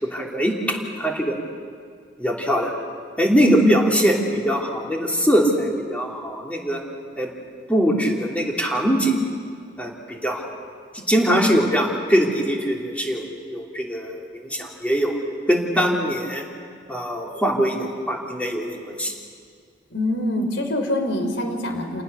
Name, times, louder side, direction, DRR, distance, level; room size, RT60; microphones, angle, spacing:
voice 1, 0.0-1.4 2.2-2.7 3.2-6.8 7.2-7.3 7.7-9.3 9.8-10.5 10.9-14.1 14.4-15.1 15.5-16.4 16.9-19.1, equal, 10° left, -1 dB, 3.0 m, -22 dB
voice 2, 3.4-3.7 19.9-22.0, left 1 dB, 85° left, 5 dB, 3.3 m, -24 dB
28.5 x 19.0 x 6.9 m, 2.1 s
head